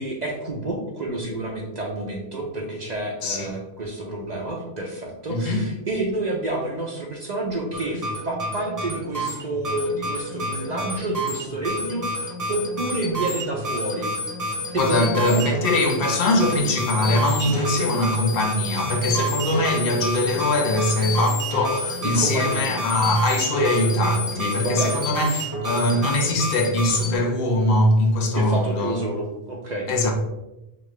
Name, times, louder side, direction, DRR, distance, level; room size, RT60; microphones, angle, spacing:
voice 1, 0.0-14.1 14.7-15.5 17.7-17.9 22.0-22.7 24.6-25.0 28.3-30.1, right 2 dB, 50° right, 0.6 m, -29 dB
voice 2, 5.3-5.7 14.8-29.0 29.9-30.1, left 1 dB, 60° left, 0.9 m, -22 dB
sound 1, 7.7-27.2, equal, 20° right, 0.8 m, -29 dB
5.1 x 2.5 x 3.1 m
omnidirectional pair, 1.1 m